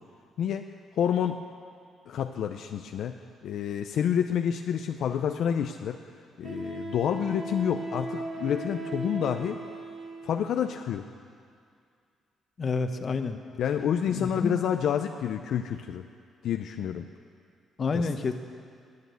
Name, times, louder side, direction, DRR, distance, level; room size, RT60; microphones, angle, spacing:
voice 1, 1.0-1.4 2.1-6.0 6.4-9.6 10.2-11.0 13.6-16.0 16.4-17.0 17.9-18.1, left 8 dB, 75° left, 6 dB, 0.6 m, -28 dB
Wind instrument woodwind instrument, 5.1-5.2 6.4-10.5, right 2 dB, 55° right, 3.2 m, -37 dB
voice 2, 12.6-13.4 14.1-14.5 17.8-18.3, left 4 dB, 45° left, 7 dB, 1.1 m, -28 dB
19.0 x 8.7 x 8.3 m, 2.3 s
cardioid pair, 85°, 0 cm